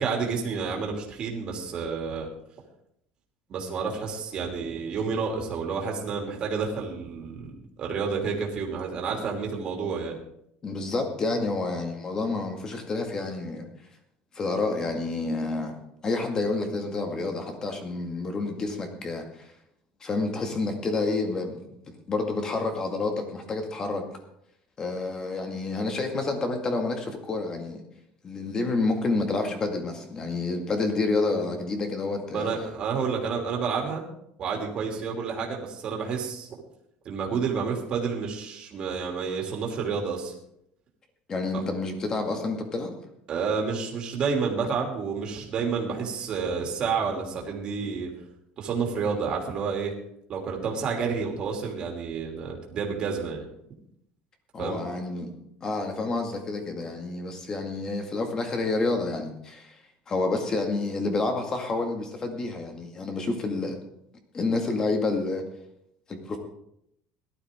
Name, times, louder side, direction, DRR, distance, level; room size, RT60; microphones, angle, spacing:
voice 1, 0.0-2.3 3.5-7.5 7.8-10.2 32.3-34.0 34.4-36.5 37.0-40.3 43.3-48.1 48.6-49.9 50.3-53.4 54.6-54.8, right 5 dB, 35° right, 0 dB, 3.0 m, -29 dB
voice 2, 10.6-13.7 14.3-15.7 16.0-19.5 20.0-21.6 22.1-24.1 24.8-27.8 28.2-32.5 41.3-42.9 54.5-55.3 55.6-59.8 60.1-63.8 64.3-65.5 66.1-66.4, left 3 dB, 25° left, 4 dB, 2.1 m, -29 dB
17.5 x 12.0 x 3.7 m, 0.76 s
cardioid pair, 155°, 3 cm